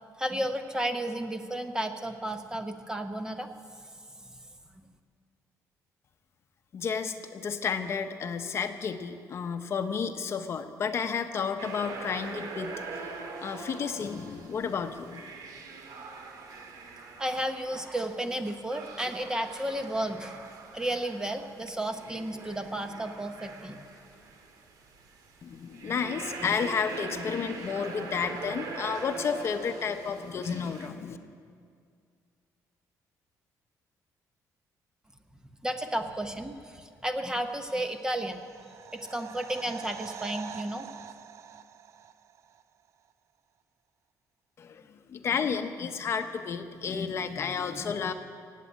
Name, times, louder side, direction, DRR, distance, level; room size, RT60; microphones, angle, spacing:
voice 1, 0.2-3.5 4.8-4.9 17.2-20.4 20.7-23.9 35.6-38.4 38.9-40.9, right 1 dB, 10° right, 6 dB, 0.8 m, -33 dB
voice 2, 6.7-13.1 13.4-15.3 25.4-31.2 44.6-48.1, left 6 dB, 40° left, 8 dB, 0.8 m, -32 dB
sound 1, 11.6-30.9, right 4 dB, 75° right, 1.7 m, -43 dB
sound 2, 37.8-42.6 42.9-43.0, right 9 dB, 45° right, 0.4 m, -45 dB
17.5 x 8.3 x 8.6 m, 2.2 s
cardioid pair, 155°, 7 cm